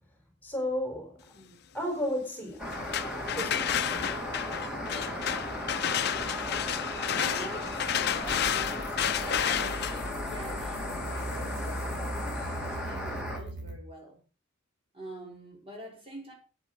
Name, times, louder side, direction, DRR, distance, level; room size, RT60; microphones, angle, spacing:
voice 1, 0.4-1.2 1.7-2.7 3.4-3.7, left 1 dB, 10° left, 4.2 m, -32 dB
sound 1, 2.6-12.5, left 9 dB, 60° left, 0.7 m, -32 dB
sound 2, 2.6-13.4, left 1 dB, 5° right, 3.1 m, -36 dB
voice 2, 5.6-12.2 12.7-14.2 14.9-16.3, right 1 dB, 30° right, 5.2 m, -46 dB
sound 3, 8.2-13.8, equal, 65° right, 2.0 m, -40 dB
11.5 x 9.3 x 5.1 m
head